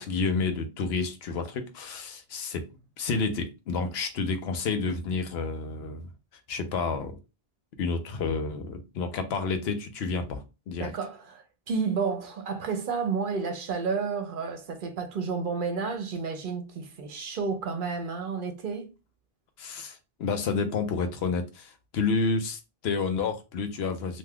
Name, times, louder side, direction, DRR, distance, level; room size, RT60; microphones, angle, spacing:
voice 1, 0.0-2.6 3.0-6.1 6.5-7.2 7.8-10.9 19.6-24.2, left 4 dB, 85° left, 0.8 m, -30 dB
voice 2, 10.8-18.9, right 5 dB, 60° right, 0.7 m, -31 dB
3.4 x 2.5 x 2.3 m
omnidirectional pair, 1.0 m